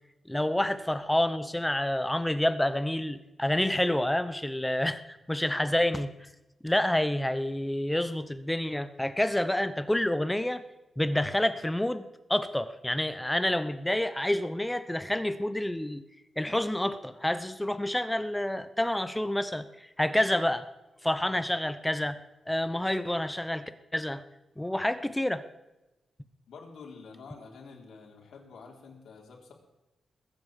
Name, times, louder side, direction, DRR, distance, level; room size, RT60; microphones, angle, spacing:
voice 1, 0.3-5.0 5.3-6.1 6.6-10.6 11.0-16.0 16.4-20.7 21.0-22.2 22.5-24.2 24.6-25.4, left 1 dB, 5° left, 12 dB, 0.9 m, -28 dB
voice 2, 26.5-29.5, left 5 dB, 80° left, -1 dB, 3.8 m, -48 dB
20.5 x 8.6 x 7.4 m, 1.0 s
wide cardioid pair, 130°, 0 cm